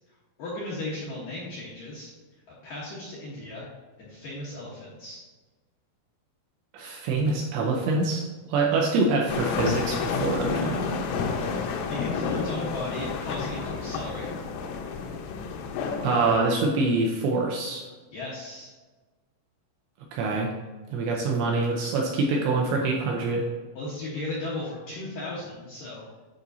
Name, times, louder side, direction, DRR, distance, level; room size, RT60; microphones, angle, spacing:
voice 1, 0.4-2.1 2.6-3.7 4.0-5.2 11.6-14.3 18.1-18.7 23.7-26.0, left 2 dB, 70° left, -7 dB, 2.1 m, -36 dB
voice 2, 6.7-8.2 8.5-10.8 16.0-17.8 20.1-20.5 20.9-23.4, right 3 dB, 80° right, -1 dB, 2.6 m, -25 dB
sound 1, 9.3-16.4, left 5 dB, 90° left, 3.3 m, -30 dB
10.0 x 5.2 x 2.7 m, 1.3 s
omnidirectional pair, 5.6 m